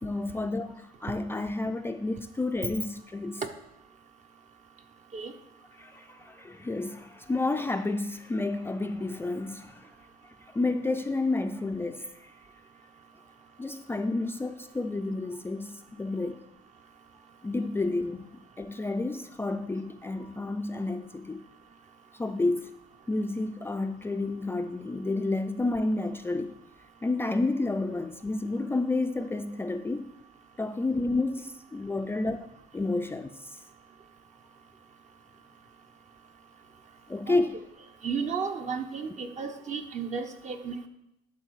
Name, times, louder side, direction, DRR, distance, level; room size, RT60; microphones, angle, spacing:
voice 1, 0.0-3.4 5.8-9.9 10.2-12.3 13.6-16.4 17.4-18.3 18.6-21.4 22.1-22.7 23.1-26.6 27.0-30.1 30.6-33.6 37.1-37.6, left 2 dB, 15° left, 0.4 m, -30 dB
voice 2, 38.0-40.9, right 5 dB, 45° right, 1.1 m, -33 dB
11.0 x 4.0 x 6.5 m
cardioid pair, 110°, 17 cm